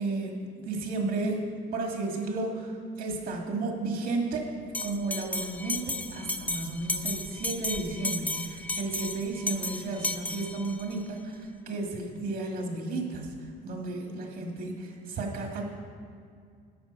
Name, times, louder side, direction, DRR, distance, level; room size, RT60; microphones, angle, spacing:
voice 1, 0.0-4.5 4.8-13.3 13.6-15.6, right 3 dB, 60° right, 1 dB, 1.9 m, -33 dB
Bell, 4.7-11.0, left 2 dB, 10° left, 0.4 m, -34 dB
10.5 x 7.4 x 5.2 m, 2.3 s
cardioid pair, 110°, 17 cm